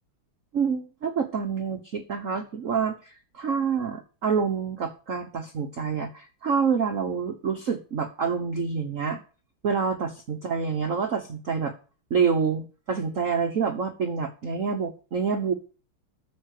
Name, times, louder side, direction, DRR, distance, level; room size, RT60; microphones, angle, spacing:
voice 1, 0.5-9.2 9.6-11.7 12.1-15.5, right 6 dB, 45° right, 5 dB, 1.2 m, -27 dB
13.0 x 6.8 x 6.6 m, 0.37 s
omnidirectional pair, 2.4 m